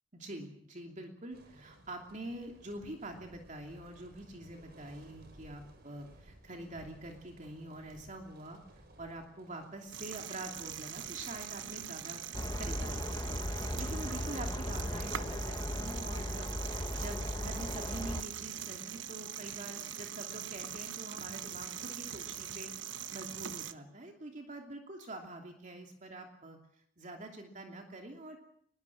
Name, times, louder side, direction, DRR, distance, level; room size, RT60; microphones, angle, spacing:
voice 1, 0.1-12.2 12.6-26.6 27.0-28.4, right 1 dB, 40° right, 2 dB, 2.8 m, -46 dB
sound 1, 1.3-14.4, right 1 dB, 55° right, 6.0 m, -59 dB
sound 2, 9.9-23.7, right 10 dB, 75° right, 1.1 m, -42 dB
sound 3, 12.3-18.2, left 1 dB, 20° left, 1.3 m, -37 dB
23.0 x 21.5 x 7.2 m, 0.68 s
head